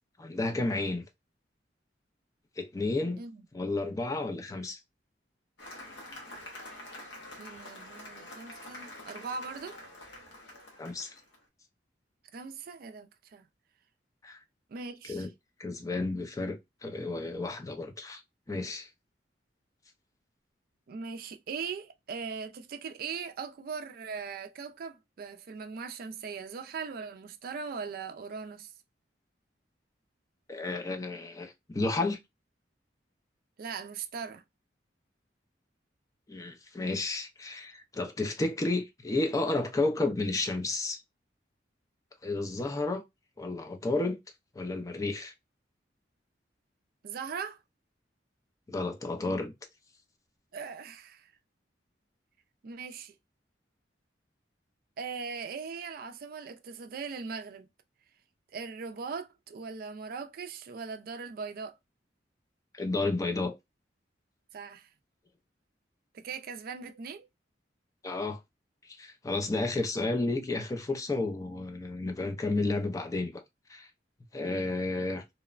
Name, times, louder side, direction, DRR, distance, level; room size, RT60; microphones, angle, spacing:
voice 1, 0.2-1.0 2.6-3.2 3.5-4.8 10.8-11.1 14.2-14.4 15.1-15.3 15.6-18.2 18.5-18.9 30.5-32.2 36.3-41.0 42.2-43.0 43.4-44.2 44.6-45.3 48.7-49.5 62.7-63.5 68.0-68.4 68.9-73.3 73.7-73.9 74.3-75.2, left 2 dB, 20° left, 0.4 m, -31 dB
Cheering / Applause, 5.6-11.4, left 1 dB, 75° left, 0.8 m, -46 dB
voice 2, 7.4-9.8 12.3-13.5 14.7-15.3 20.9-28.7 33.6-34.4 47.0-47.6 50.5-51.3 52.6-53.1 55.0-57.7 58.5-61.7 64.5-64.9 66.1-67.3 69.5-69.6, right 5 dB, 55° right, 0.3 m, -40 dB
2.9 x 2.1 x 2.3 m
head